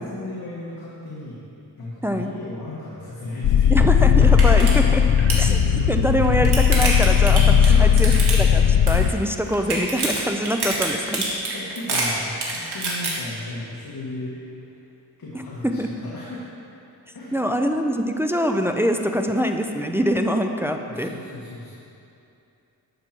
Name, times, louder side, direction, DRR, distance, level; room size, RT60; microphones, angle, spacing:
voice 1, 0.0-1.4 1.8-3.9 4.4-4.5 5.4-5.9 7.3-8.1 11.5-14.4 15.2-16.5 17.1-17.3 20.8-21.7, left 2 dB, 55° left, -6 dB, 1.7 m, -35 dB
sound 1, 3.4-9.1, left 8 dB, 80° left, 0.6 m, -17 dB
voice 2, 3.7-5.0 5.4-5.5 5.9-7.4 7.8-11.2 15.3-15.9 17.3-21.1, equal, 5° right, 4 dB, 0.5 m, -24 dB
sound 2, 3.8-3.9 4.2-4.7 5.0-5.5 6.1-8.6 8.9-9.3 9.5-13.1, right 3 dB, 70° right, 2.1 m, -26 dB
11.5 x 7.4 x 4.5 m, 2.7 s
wide cardioid pair, 115°, 41 cm